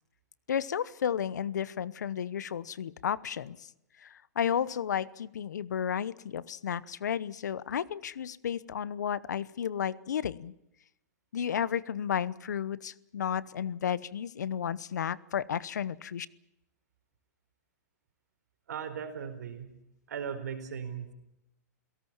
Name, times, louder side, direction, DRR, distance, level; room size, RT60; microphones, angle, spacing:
voice 1, 0.5-3.7 4.0-10.5 11.3-16.3, left 8 dB, 85° left, 20 dB, 1.0 m, -33 dB
voice 2, 18.7-19.7 20.1-21.1, right 7 dB, 75° right, 8 dB, 4.2 m, -37 dB
29.5 x 17.5 x 7.3 m, 0.85 s
hypercardioid pair, 140°, 9 cm